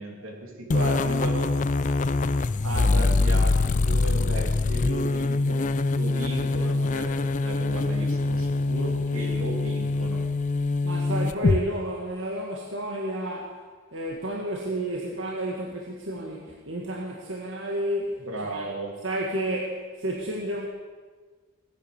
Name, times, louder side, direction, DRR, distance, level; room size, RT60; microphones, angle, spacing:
voice 1, 0.0-1.5 2.6-10.2 18.2-18.9, right 2 dB, 80° right, 0 dB, 2.9 m, -35 dB
sound 1, 0.7-11.6, left 3 dB, 35° left, 0.5 m, -24 dB
voice 2, 10.8-13.6 13.9-18.2 18.5-18.7 19.0-20.7, right 1 dB, 65° right, -2 dB, 1.8 m, -31 dB
17.0 x 10.0 x 7.0 m, 1.5 s
head